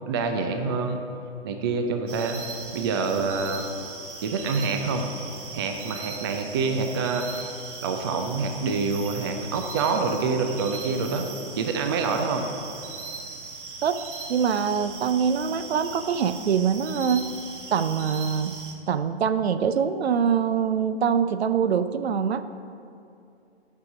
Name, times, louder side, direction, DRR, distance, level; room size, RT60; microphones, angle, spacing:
voice 1, 0.1-1.0 1.4-2.4 2.7-3.7 4.2-5.1 5.5-7.6 7.8-11.3 11.6-12.5, right 4 dB, 20° right, 5 dB, 0.4 m, -26 dB
sound 1, 2.1-18.7, right 4 dB, 50° right, 1.3 m, -39 dB
voice 2, 14.3-17.3 17.7-18.5 18.9-22.4, right 7 dB, 65° right, 11 dB, 0.6 m, -24 dB
7.8 x 5.6 x 6.1 m, 2.6 s
hypercardioid pair, 130°, 34 cm